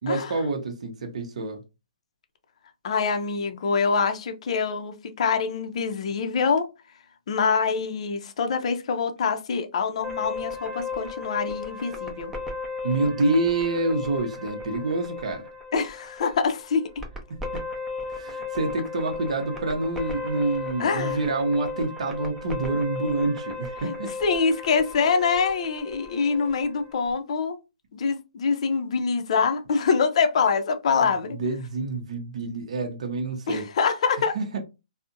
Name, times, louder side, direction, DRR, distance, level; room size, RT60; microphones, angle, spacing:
voice 1, 0.0-1.6 12.8-15.5 17.3-17.6 18.1-24.1 31.0-33.7 34.3-34.6, right 2 dB, 65° right, 0.6 m, -27 dB
voice 2, 2.8-6.7 7.3-12.3 15.7-16.9 20.8-21.2 23.8-27.6 27.9-31.4 33.5-34.4, left 5 dB, 60° left, 0.4 m, -25 dB
sound 1, 10.0-27.1, left 3 dB, 10° right, 0.5 m, -35 dB
2.5 x 2.0 x 2.5 m
hypercardioid pair, 140°, 4 cm